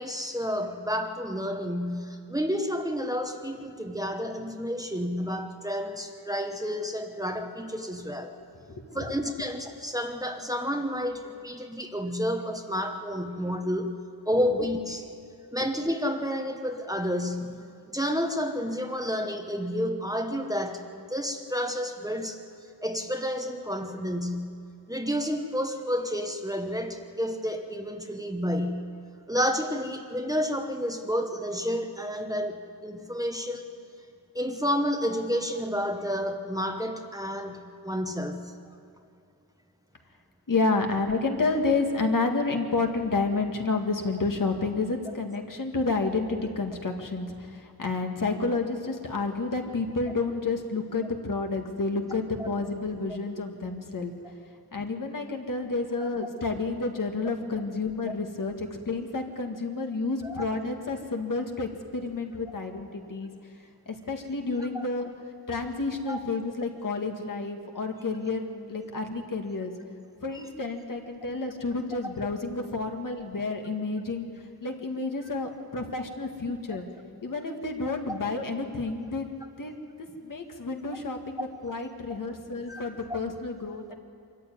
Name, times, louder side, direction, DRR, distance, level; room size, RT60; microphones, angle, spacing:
voice 1, 0.0-8.3 8.9-13.9 14.3-15.1 15.5-17.6 17.9-22.4 22.8-24.5 24.9-28.8 29.3-33.7 34.3-38.4 52.4-52.5 56.0-56.1 60.2-60.4 64.7-64.9 66.1-66.2 68.8-68.9 80.9-81.0 82.7-83.2, equal, 10° right, 4 dB, 1.1 m, -30 dB
voice 2, 8.7-9.1 40.5-54.1 54.7-63.3 63.9-65.1 65.5-69.7 70.2-74.3 74.6-76.9 77.2-79.3 79.6-83.9, left 3 dB, 55° left, 3 dB, 1.9 m, -30 dB
24.5 x 14.5 x 9.4 m, 2.4 s
wide cardioid pair, 135°, 39 cm